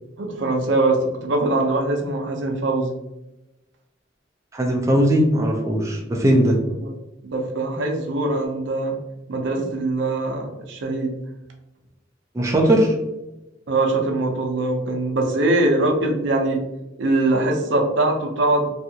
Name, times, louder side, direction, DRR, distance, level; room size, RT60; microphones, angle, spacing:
voice 1, 0.2-3.0 7.2-9.0 9.3-11.1 13.7-16.6 17.0-18.7, right 2 dB, 70° right, 3 dB, 0.5 m, -22 dB
voice 2, 4.5-6.6 12.3-12.9, right 1 dB, 15° right, -1 dB, 0.4 m, -18 dB
2.7 x 2.4 x 2.7 m, 0.98 s
head